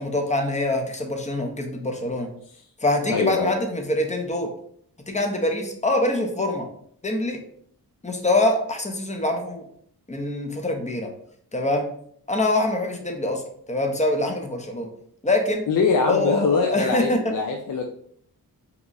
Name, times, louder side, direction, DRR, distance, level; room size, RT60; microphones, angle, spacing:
voice 1, 0.0-2.3 2.8-4.5 5.1-6.7 7.0-7.4 8.0-9.7 10.1-11.1 11.5-11.9 12.3-13.4 13.7-14.9 15.2-15.7 16.1-17.3, left 1 dB, 20° left, 4 dB, 0.7 m, -24 dB
voice 2, 3.1-3.5 15.7-17.8, left 5 dB, 55° left, 2 dB, 0.5 m, -22 dB
2.9 x 2.3 x 3.9 m, 0.64 s
cardioid pair, 60°, 38 cm